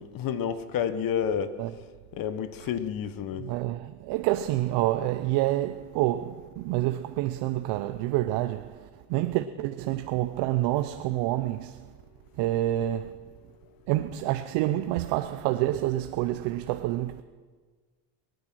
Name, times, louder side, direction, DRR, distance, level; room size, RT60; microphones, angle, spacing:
voice 1, 0.0-1.5 2.1-3.5, left 8 dB, 45° left, 1.2 m, -30 dB
voice 2, 3.4-11.8 12.4-13.2 13.9-17.2, right 15 dB, 60° right, 0.7 m, -28 dB
22.5 x 9.5 x 6.1 m
supercardioid pair, 115°, 46 cm